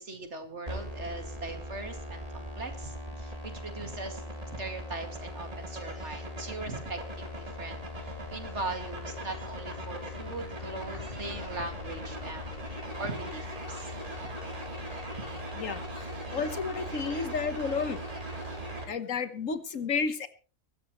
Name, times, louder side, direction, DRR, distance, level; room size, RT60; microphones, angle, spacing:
voice 1, 0.0-12.6 13.0-13.9 14.2-14.3 15.2-15.4 16.2-16.5 16.9-17.3, right 3 dB, 55° right, 6 dB, 2.6 m, -40 dB
sound 1, 0.7-18.8, equal, 25° right, 3.4 m, -39 dB
voice 2, 16.3-18.0 18.9-20.3, left 5 dB, 70° left, 11 dB, 1.6 m, -31 dB
23.5 x 13.0 x 3.1 m, 0.34 s
omnidirectional pair, 1.4 m